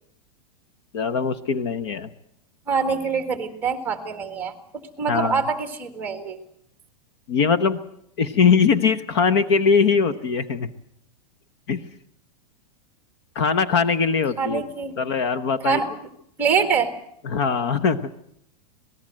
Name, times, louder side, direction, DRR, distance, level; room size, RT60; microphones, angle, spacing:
voice 1, 0.9-2.1 5.1-5.4 7.3-7.8 8.2-10.7 11.7-11.8 13.3-14.6 15.0-15.8 17.3-18.1, left 5 dB, 40° left, 10 dB, 1.0 m, -21 dB
voice 2, 2.7-4.5 5.0-6.4 14.4-15.0 15.6-15.9 16.4-16.9, right 6 dB, 10° right, 7 dB, 1.7 m, -24 dB
26.5 x 19.0 x 7.6 m, 0.72 s
supercardioid pair, 180°, 21 cm